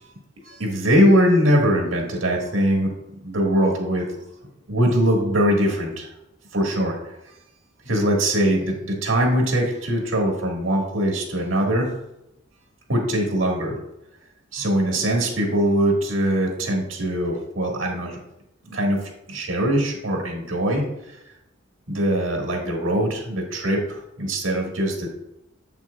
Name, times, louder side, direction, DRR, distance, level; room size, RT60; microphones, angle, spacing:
voice 1, 0.4-2.9 3.2-4.1 4.7-6.1 6.5-7.1 7.8-11.9 12.9-13.8 14.5-18.2 18.6-19.0 19.3-20.8 21.9-25.1, equal, 85° right, 0 dB, 1.7 m, -22 dB
7.3 x 5.9 x 2.3 m, 0.86 s
head